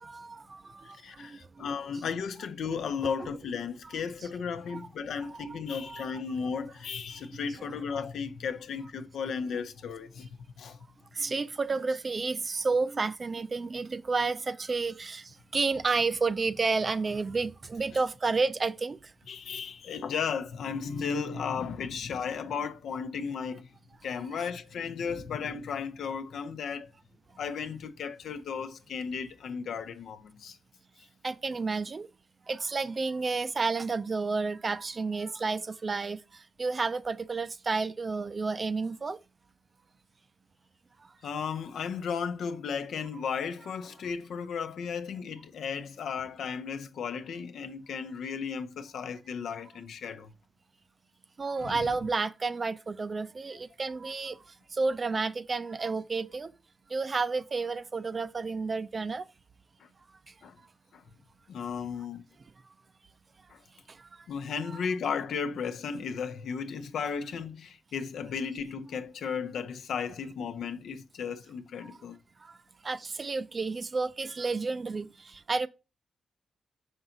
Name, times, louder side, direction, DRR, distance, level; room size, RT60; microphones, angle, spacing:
voice 1, 0.0-1.4 3.2-3.3 4.7-4.8 5.3-5.5 5.8-6.1 7.3-7.4 11.1-19.0 31.2-32.1 32.5-36.2 36.6-39.2 51.4-54.4 54.7-56.5 56.9-59.3 64.7-64.8 71.8-71.9 72.4-72.5 72.8-75.7, right 4 dB, 30° right, 0.4 m, -31 dB
voice 2, 0.8-10.8 19.3-23.7 24.0-26.9 27.4-30.6 41.2-50.3 51.6-51.9 59.8-59.9 60.4-60.6 60.9-61.0 61.5-62.2 63.5-63.6 64.3-72.2, left 6 dB, 80° left, 0.7 m, -35 dB
5.9 x 5.5 x 3.8 m
wide cardioid pair, 130°, 0 cm